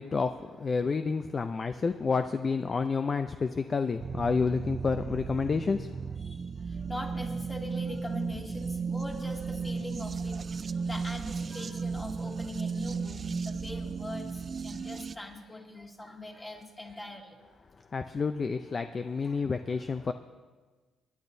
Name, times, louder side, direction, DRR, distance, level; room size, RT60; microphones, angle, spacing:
voice 1, 0.0-5.9 17.9-20.1, left 4 dB, 35° left, 8 dB, 0.5 m, -29 dB
voice 2, 2.6-3.0 5.8-5.9 6.2-13.2 13.4-17.4 18.9-20.1, left 1 dB, 20° left, -1 dB, 2.4 m, -42 dB
sound 1, 4.0-15.2, right 5 dB, 40° right, 0.4 m, -35 dB
25.5 x 10.5 x 2.7 m, 1.4 s
cardioid pair, 90°, 0 cm